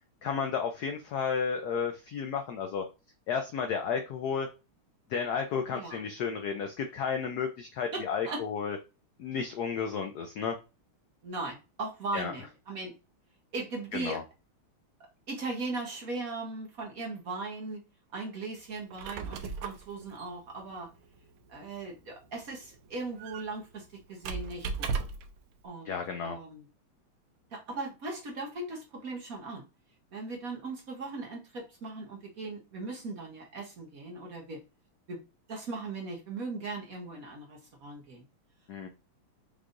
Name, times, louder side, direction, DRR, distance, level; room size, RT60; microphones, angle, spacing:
voice 1, 0.2-2.8 3.3-4.5 5.1-8.8 9.2-10.6 12.1-12.3 13.9-14.2 25.9-26.4 38.7-38.9, left 6 dB, 80° left, 5 dB, 0.8 m, -32 dB
voice 2, 7.9-8.4 11.2-12.9 13.5-14.2 15.3-17.8 18.1-20.9 21.5-24.9 25.6-25.9 26.2-26.6 27.5-29.6 30.1-34.6 35.1-35.2 35.5-38.2, right 3 dB, 50° right, 0 dB, 1.2 m, -38 dB
Squeak, 18.8-25.4, right 5 dB, 80° right, 1.4 m, -39 dB
5.2 x 3.3 x 2.5 m, 0.28 s
omnidirectional pair, 2.4 m